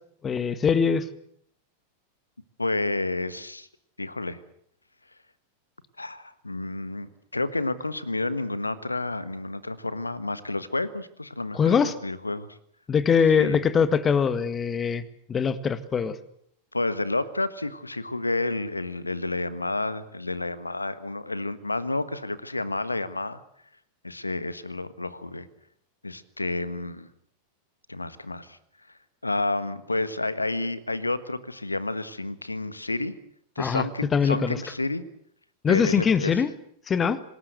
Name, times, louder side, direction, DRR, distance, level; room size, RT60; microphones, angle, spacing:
voice 1, 0.2-1.1 11.5-11.9 12.9-15.0 15.3-16.2 33.6-33.8 34.1-34.6 35.6-36.5 36.9-37.2, left 6 dB, 20° left, 15 dB, 1.7 m, -22 dB
voice 2, 2.6-3.7 4.0-4.4 6.0-12.6 13.4-13.6 16.7-23.4 24.0-25.5 26.0-27.1 27.9-28.6 29.2-33.1 33.5-35.0 35.7-36.4, left 2 dB, 80° left, 15 dB, 1.5 m, -30 dB
26.5 x 19.5 x 8.0 m, 0.68 s
figure-of-eight pair, 90°, 0 cm